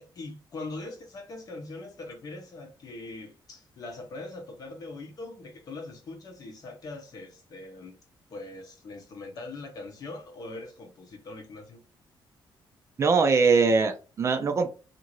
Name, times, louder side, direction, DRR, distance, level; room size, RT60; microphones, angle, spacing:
voice 1, 0.0-8.0 8.3-11.8, left 2 dB, 45° left, 0.9 m, -41 dB
voice 2, 13.0-14.7, right 4 dB, 35° right, 0.4 m, -22 dB
2.7 x 2.5 x 2.9 m
cardioid pair, 165°, 9 cm